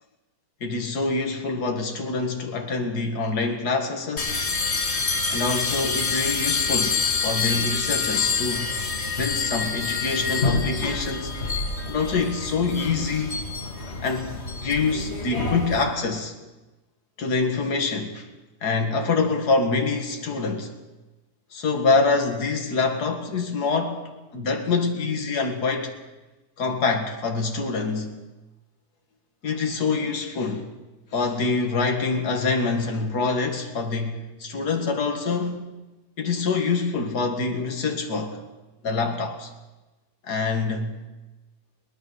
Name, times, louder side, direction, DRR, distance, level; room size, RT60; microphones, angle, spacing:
voice 1, 0.6-4.5 5.3-8.7 9.2-11.3 11.9-13.4 14.0-16.3 17.2-18.3 18.6-20.7 21.5-25.9 26.6-28.1 29.4-30.7 31.1-35.7 36.2-38.4 38.8-39.5 40.3-41.0, left 4 dB, 75° left, 2.4 m, -25 dB
sound 1, 4.2-15.8, left 4 dB, 40° left, 2.4 m, -27 dB
21.5 x 19.5 x 6.3 m
omnidirectional pair, 1.7 m